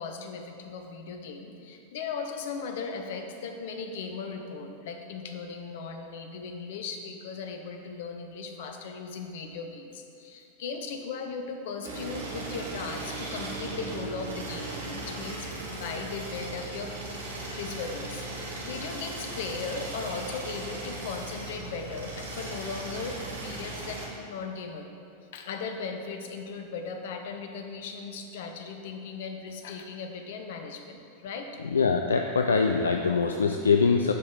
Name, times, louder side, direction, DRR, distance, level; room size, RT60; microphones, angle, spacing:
voice 1, 0.0-16.9 17.6-24.9 25.3-31.6, left 5 dB, 55° left, 5 dB, 0.8 m, -37 dB
sound 1, 11.8-24.1, right 2 dB, 70° right, 1.6 m, -37 dB
voice 2, 31.6-34.1, left 5 dB, 70° left, 4 dB, 0.4 m, -23 dB
12.0 x 5.3 x 3.8 m, 2.5 s
figure-of-eight pair, 90°, 0 cm